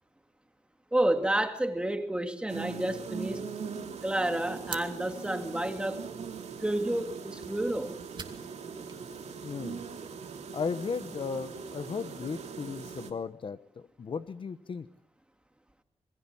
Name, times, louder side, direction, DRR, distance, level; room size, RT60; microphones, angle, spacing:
voice 1, 0.9-3.5 4.0-6.1 6.6-8.0, right 1 dB, 10° right, 2.3 m, -30 dB
sound 1, 2.5-13.1, right 6 dB, 90° right, 3.0 m, -41 dB
sound 2, 4.0-10.4, right 5 dB, 45° right, 2.4 m, -49 dB
voice 2, 9.4-9.8 10.5-14.9, left 5 dB, 50° left, 1.1 m, -36 dB
27.5 x 22.0 x 7.2 m
wide cardioid pair, 170°, 11 cm